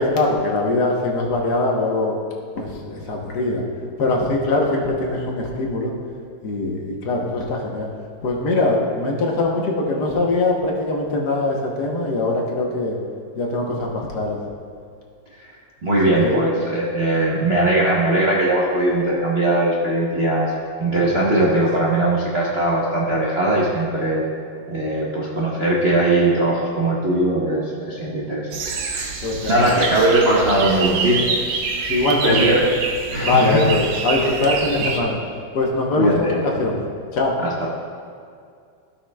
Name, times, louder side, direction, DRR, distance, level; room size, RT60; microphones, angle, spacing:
voice 1, 0.0-2.1 2.6-3.6 4.0-5.9 6.4-7.9 8.2-13.0 13.3-14.4 15.9-16.4 29.2-29.8 31.9-32.6 33.2-35.2 35.5-36.8 37.1-37.3, left 2 dB, 60° left, -1 dB, 1.4 m, -22 dB
voice 2, 15.8-20.5 20.8-24.2 24.7-28.6 28.9-29.1 29.5-31.2 32.2-32.6 33.1-33.7 36.0-36.4 37.6-37.7, right 1 dB, 50° right, -5 dB, 0.8 m, -20 dB
sound 1, 28.5-35.0, right 4 dB, 85° right, 1.6 m, -26 dB
15.5 x 5.7 x 2.2 m, 2.2 s
omnidirectional pair, 2.1 m